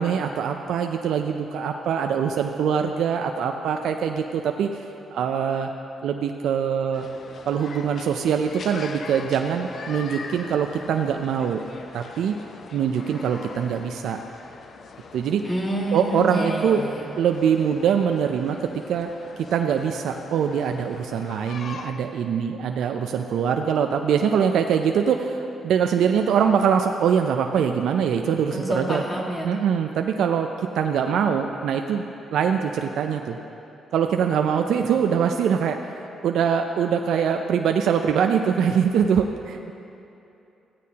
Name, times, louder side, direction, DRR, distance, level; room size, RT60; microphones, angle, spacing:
voice 1, 0.0-4.7 5.1-5.7 6.0-7.1 7.5-11.6 11.9-12.4 12.7-14.2 15.1-15.4 15.9-19.1 19.5-29.0 29.4-30.5 30.8-33.4 33.9-39.7, right 7 dB, 75° right, 4 dB, 0.4 m, -23 dB
sound 1, 6.9-21.9, left 4 dB, 55° left, 0.6 m, -42 dB
voice 2, 15.4-17.0 28.5-29.5, right 1 dB, 25° left, -1 dB, 1.8 m, -28 dB
15.0 x 9.2 x 2.8 m, 2.8 s
cardioid pair, 70°, 0 cm